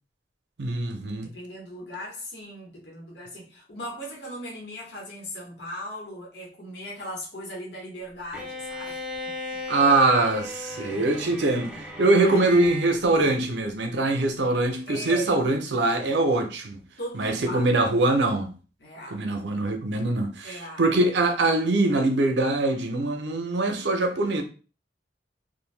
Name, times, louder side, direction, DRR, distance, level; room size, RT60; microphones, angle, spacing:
voice 1, 0.6-1.3 9.7-16.8 17.1-18.5 19.1-24.4, right 2 dB, 75° right, 0.6 m, -23 dB
voice 2, 1.2-9.1 12.2-12.4 14.9-15.4 17.0-17.9 18.8-19.2 20.4-20.8, equal, 65° left, 0.9 m, -38 dB
Bowed string instrument, 8.3-13.0, left 2 dB, 5° right, 0.4 m, -36 dB
2.6 x 2.1 x 3.2 m
head